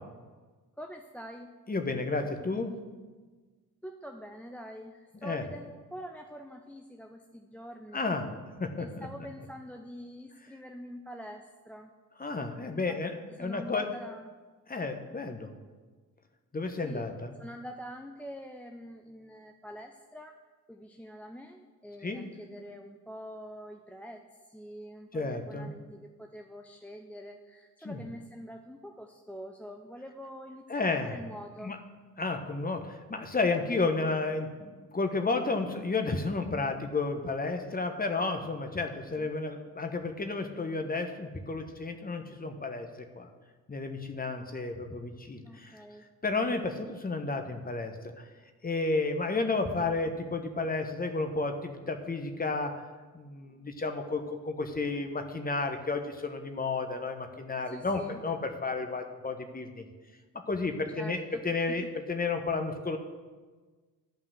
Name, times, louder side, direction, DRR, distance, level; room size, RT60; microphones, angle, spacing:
voice 1, 0.8-1.5 3.8-8.0 8.8-11.9 12.7-13.0 13.3-14.3 16.8-17.1 17.4-20.3 20.7-31.7 34.1-34.2 39.2-39.3 45.4-46.0 57.7-58.2 60.9-61.4 61.7-61.8, equal, 5° left, 3 dB, 0.6 m, -45 dB
voice 2, 1.7-2.7 5.2-5.4 7.9-9.1 12.2-13.1 13.4-13.9 14.7-15.5 16.5-17.4 22.0-22.3 25.1-25.7 27.8-28.0 30.7-31.2 31.6-31.8 32.2-42.9 43.1-43.3 43.7-45.8 46.2-48.2 48.6-52.8 53.1-59.9 60.5-63.0, left 3 dB, 20° left, 6 dB, 1.3 m, -32 dB
12.0 x 5.6 x 6.5 m, 1.4 s
figure-of-eight pair, 45°, 48 cm